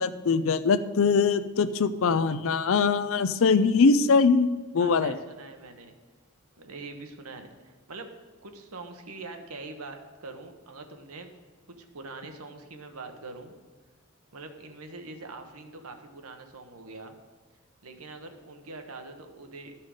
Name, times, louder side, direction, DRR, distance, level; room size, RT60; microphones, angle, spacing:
voice 1, 0.0-5.2, left 4 dB, 60° left, 13 dB, 0.5 m, -22 dB
voice 2, 4.8-5.9 6.6-8.1 8.4-11.3 11.8-13.5 14.3-17.2 17.8-19.7, right 3 dB, 75° right, 6 dB, 1.0 m, -43 dB
13.0 x 5.7 x 4.9 m, 1.3 s
head